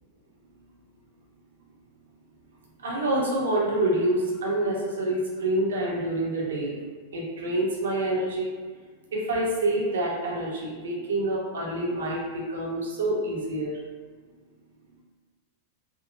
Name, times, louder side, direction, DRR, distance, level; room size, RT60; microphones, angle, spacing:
voice 1, 2.8-6.8 7.1-8.5 9.1-13.7, right 1 dB, 65° right, -4 dB, 0.7 m, -27 dB
3.7 x 2.2 x 2.5 m, 1.5 s
figure-of-eight pair, 90°, 0 cm